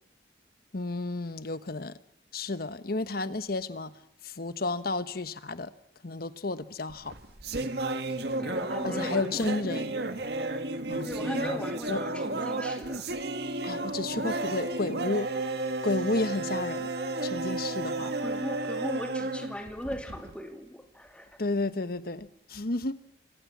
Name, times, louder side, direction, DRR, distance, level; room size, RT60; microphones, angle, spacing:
voice 1, 0.7-2.0 2.3-3.9 4.2-5.7 6.0-7.1 8.8-9.9 10.9-11.6 11.9-12.0 13.6-15.3 15.8-16.9 17.2-18.1 21.4-22.9, left 2 dB, 55° left, 1.2 m, -32 dB
sound 1, 6.9-20.3, right 2 dB, 60° right, 1.9 m, -32 dB
voice 2, 8.4-10.0 11.0-13.1 18.0-21.4, equal, 5° left, 2.9 m, -39 dB
28.0 x 24.0 x 7.4 m
head